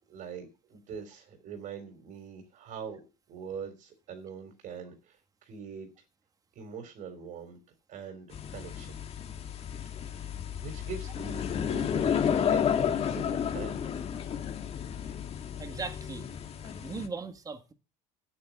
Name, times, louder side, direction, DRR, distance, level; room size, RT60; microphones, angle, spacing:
voice 1, 0.1-3.0 3.3-5.9 6.5-7.6 7.9-9.0 9.8-13.8, right 6 dB, 55° right, 3.9 m, -43 dB
sound 1, 8.3-17.1, left 8 dB, 40° left, 1.9 m, -32 dB
voice 2, 15.6-16.3 16.6-17.7, right 4 dB, 20° right, 1.9 m, -39 dB
10.5 x 9.6 x 7.3 m
cardioid pair, 120°, 16 cm